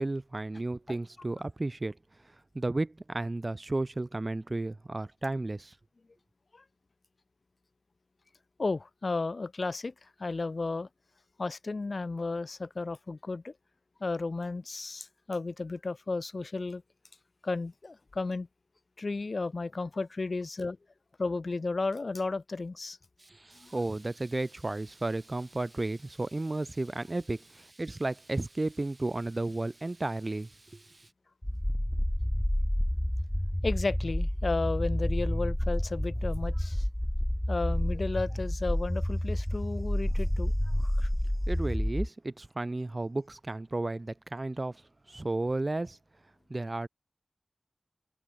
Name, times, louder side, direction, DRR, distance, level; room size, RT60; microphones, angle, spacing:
voice 1, 0.0-2.0 2.5-5.7 23.2-31.1 41.5-44.8 45.1-46.0 46.5-46.9, right 2 dB, 45° right, 1.9 m, -33 dB
voice 2, 8.6-10.9 11.4-13.5 14.0-16.8 17.4-18.5 19.0-20.8 21.2-23.0 23.5-23.7 33.6-36.9 37.5-40.5 40.8-41.1, left 3 dB, 75° left, 1.2 m, -33 dB
sound 1, 31.4-42.1, left 1 dB, 10° left, 2.5 m, -29 dB
wide cardioid pair, 55°, 0 cm